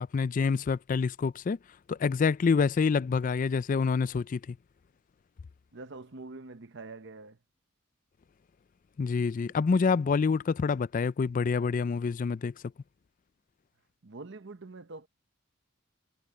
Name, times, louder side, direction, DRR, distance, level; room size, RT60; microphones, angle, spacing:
voice 1, 0.0-1.6 1.9-4.6 9.0-12.5, left 5 dB, 40° left, 0.3 m, -27 dB
voice 2, 5.7-7.4 14.0-15.1, right 3 dB, 60° right, 0.9 m, -45 dB
head